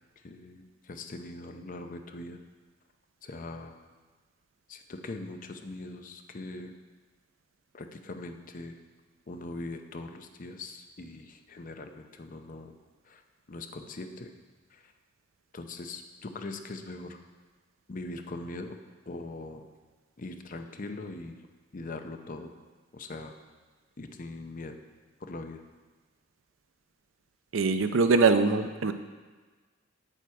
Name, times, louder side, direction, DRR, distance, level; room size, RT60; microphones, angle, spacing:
voice 1, 0.2-2.4 3.2-3.8 4.7-6.7 7.7-8.8 9.3-12.7 13.0-13.2 13.5-14.3 14.7-14.9 15.5-17.2 17.9-18.8 19.1-19.7 20.2-21.4 21.7-22.5 22.9-23.3 24.0-24.8 25.2-25.6, left 2 dB, 45° left, 6 dB, 0.6 m, -41 dB
voice 2, 27.5-28.9, right 4 dB, 85° right, 9 dB, 0.6 m, -23 dB
8.4 x 7.2 x 4.7 m, 1.4 s
head